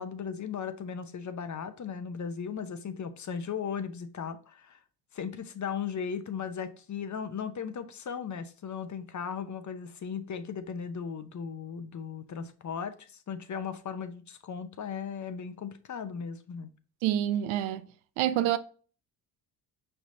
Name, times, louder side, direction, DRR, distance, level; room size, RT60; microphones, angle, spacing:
voice 1, 0.0-4.8 5.1-16.7, left 7 dB, 40° left, 0.7 m, -37 dB
voice 2, 17.0-17.9 18.2-18.6, right 12 dB, 80° right, 0.6 m, -27 dB
5.9 x 3.3 x 2.7 m
hypercardioid pair, 50°, 47 cm